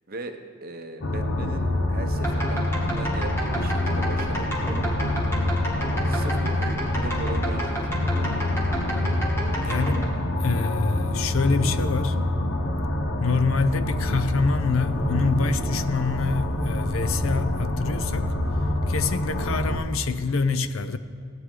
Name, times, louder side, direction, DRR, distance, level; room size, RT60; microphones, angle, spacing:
voice 1, 0.1-4.8 6.0-8.3, right 2 dB, 45° right, 5 dB, 0.9 m, -39 dB
sound 1, 1.0-19.8, left 1 dB, 65° left, 0.9 m, -26 dB
sound 2, 2.1-10.0, right 1 dB, 10° left, 1.9 m, -32 dB
voice 2, 9.6-10.1 10.4-12.2 13.2-18.3 18.9-21.0, left 4 dB, 85° left, 12 dB, 0.6 m, -26 dB
17.5 x 9.7 x 3.8 m, 2.3 s
head